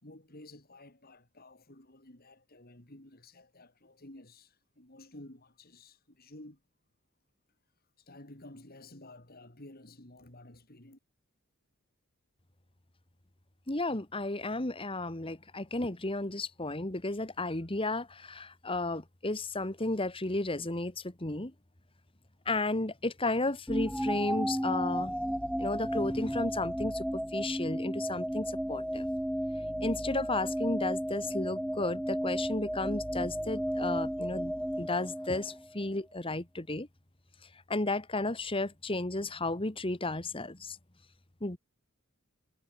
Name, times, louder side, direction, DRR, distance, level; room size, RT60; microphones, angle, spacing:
voice 1, 0.0-6.6 8.0-11.0, left 1 dB, 45° left, 3.9 m, -52 dB
voice 2, 13.7-21.5 22.5-25.2 25.6-27.1 27.3-29.1 29.8-36.9 37.7-40.8 41.4-41.6, left 2 dB, 25° left, 1.9 m, -33 dB
sound 1, 23.7-35.8, equal, ahead, 1.6 m, -33 dB
head